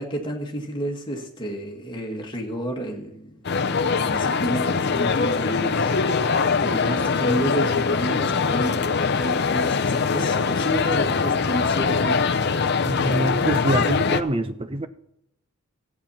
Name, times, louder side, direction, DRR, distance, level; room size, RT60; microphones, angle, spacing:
voice 1, 0.0-5.9 6.6-8.9 9.1-12.2, right 1 dB, 20° left, 1.9 m, -30 dB
sound 1, 3.4-14.2, left 5 dB, 50° left, 0.6 m, -22 dB
voice 2, 12.8-14.9, right 1 dB, 25° right, 0.6 m, -25 dB
14.5 x 8.7 x 5.7 m
head